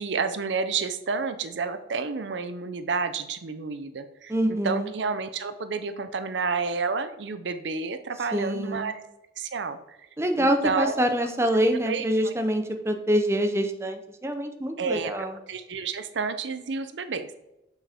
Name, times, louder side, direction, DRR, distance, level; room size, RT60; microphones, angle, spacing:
voice 1, 0.0-4.3 4.6-9.0 9.4-10.0 10.4-11.1 11.7-12.3 14.8-17.3, right 4 dB, 80° right, 11 dB, 0.6 m, -30 dB
voice 2, 4.3-4.9 8.3-8.9 10.2-15.3, equal, 15° right, 6 dB, 0.5 m, -25 dB
7.2 x 5.6 x 3.5 m, 0.92 s
head